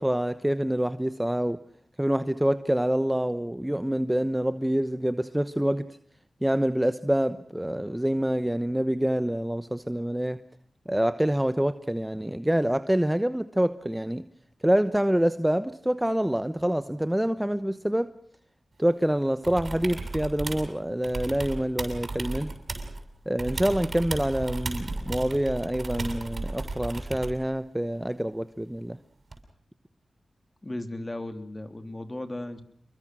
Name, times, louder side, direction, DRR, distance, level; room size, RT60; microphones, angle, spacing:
voice 1, 0.0-1.6 2.0-5.8 6.4-10.4 10.9-14.2 14.6-18.1 18.8-22.5 23.3-29.0, right 1 dB, 10° right, 1.0 m, -26 dB
sound 1, 19.4-20.7 21.0-23.0 23.4-27.4 29.3-29.4, right 3 dB, 55° right, 6.9 m, -34 dB
voice 2, 30.6-32.6, left 1 dB, 25° left, 3.1 m, -36 dB
27.5 x 22.0 x 6.2 m
cardioid pair, 45°, 0 cm